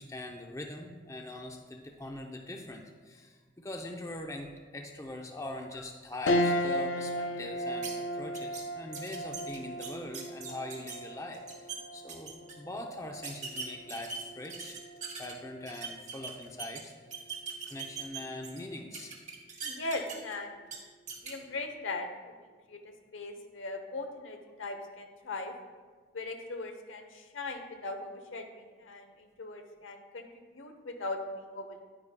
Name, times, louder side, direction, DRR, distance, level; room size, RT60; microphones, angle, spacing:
voice 1, 0.0-14.8 15.2-17.3 17.7-19.1, left 1 dB, 15° left, 2 dB, 0.6 m, -42 dB
sound 1, 6.3-15.9 16.3-16.4 17.8-18.2, equal, 70° left, 0.5 m, -35 dB
sound 2, 7.8-7.9 8.3-8.6 8.9-11.0 11.3-11.8 12.1-12.5 13.2-15.3 15.7-16.8 17.1-18.6 18.9-20.3 20.7-20.8 21.1-21.3, right 6 dB, 40° right, 1.2 m, -40 dB
voice 2, 19.6-20.5 21.2-22.3 22.7-22.8 23.1-25.5 26.1-31.8, left 2 dB, 90° left, 5 dB, 0.9 m, -39 dB
9.8 x 9.8 x 2.2 m, 1.5 s
head